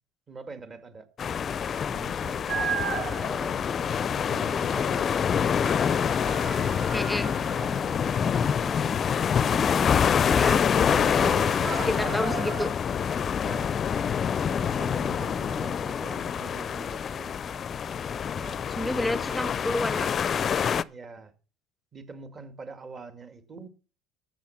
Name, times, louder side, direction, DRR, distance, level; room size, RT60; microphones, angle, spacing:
voice 1, 0.3-1.1 1.9-2.8 3.0-5.2 10.7-12.2 13.4-13.7 14.5-17.4 18.3-18.6 19.2-19.6 20.9-21.3 21.9-23.7, right 4 dB, 30° right, 2.0 m, -43 dB
sound 1, 1.2-20.8, left 7 dB, 35° left, 0.5 m, -26 dB
sound 2, 2.5-12.7, right 6 dB, 55° right, 2.3 m, -38 dB
voice 2, 6.9-7.3 10.3-10.6 11.8-12.7 18.8-20.1, left 1 dB, 5° left, 0.8 m, -30 dB
13.0 x 7.5 x 5.8 m
supercardioid pair, 95°, 0 cm